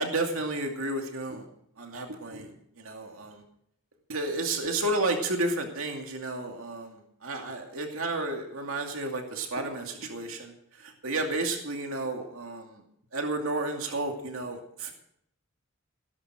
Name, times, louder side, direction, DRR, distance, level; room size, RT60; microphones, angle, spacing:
voice 1, 0.0-1.4 1.8-2.5 2.8-3.4 4.1-7.0 7.2-10.5 11.0-12.8 13.1-14.9, right 2 dB, 75° right, 3 dB, 2.4 m, -31 dB
16.5 x 13.0 x 5.0 m, 0.71 s
head